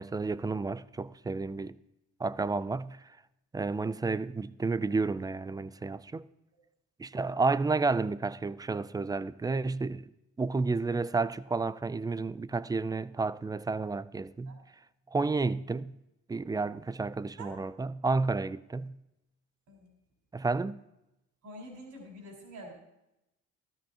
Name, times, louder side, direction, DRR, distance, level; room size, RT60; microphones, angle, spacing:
voice 1, 0.0-1.8 2.2-3.0 3.5-6.2 7.0-10.1 10.4-14.6 15.1-15.9 16.3-18.9 20.3-20.8, right 3 dB, 15° right, 0.3 m, -31 dB
voice 2, 21.4-22.7, right 1 dB, 75° right, 4.5 m, -46 dB
15.5 x 13.0 x 2.9 m
cardioid pair, 90°, 30 cm